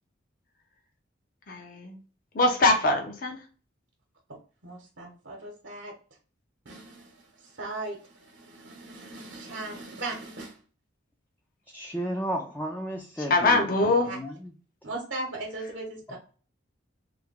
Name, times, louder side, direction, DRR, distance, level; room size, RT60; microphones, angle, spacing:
voice 1, 1.5-2.0 2.3-3.4 13.3-14.1, left 2 dB, 45° left, 3 dB, 0.7 m, -23 dB
voice 2, 4.3-5.9 6.6-10.6 14.0-14.2 14.8-16.2, right 2 dB, 75° right, 0 dB, 0.9 m, -38 dB
voice 3, 11.7-13.7 14.1-14.5 16.1-16.2, equal, 10° left, 1 dB, 0.4 m, -33 dB
3.3 x 2.2 x 3.5 m, 0.39 s
head